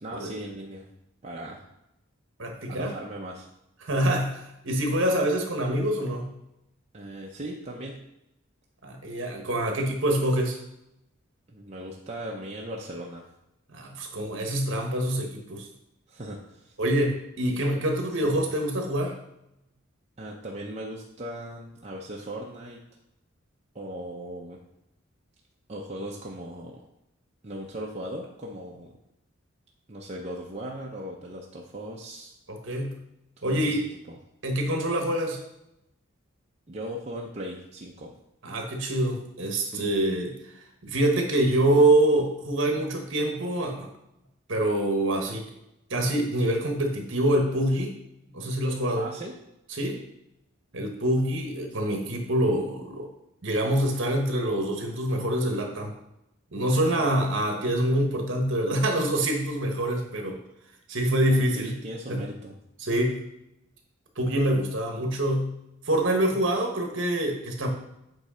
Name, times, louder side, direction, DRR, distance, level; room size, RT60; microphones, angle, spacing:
voice 1, 0.0-0.9 1.2-1.6 2.7-3.5 6.9-8.1 11.5-13.2 16.1-16.7 18.2-18.4 20.2-22.8 23.7-24.6 25.7-26.8 27.4-28.9 29.9-32.3 33.4-34.2 36.7-38.1 39.6-39.9 49.0-49.3 56.8-57.1 61.3-62.5, right 1 dB, 30° right, -2 dB, 0.6 m, -38 dB
voice 2, 2.4-3.0 3.8-6.3 8.8-10.6 13.7-15.7 16.8-19.2 32.5-33.0 33.4-33.8 34.4-35.4 38.4-40.3 40.8-43.9 44.5-45.5 45.9-47.9 48.3-49.1 49.8-50.0 50.7-53.1 53.4-55.9 56.5-60.4 60.9-61.8 62.1-62.3 62.8-63.2 64.2-65.5 65.9-67.7, right 1 dB, 60° right, 3 dB, 1.2 m, -25 dB
8.0 x 3.2 x 5.0 m, 0.85 s
head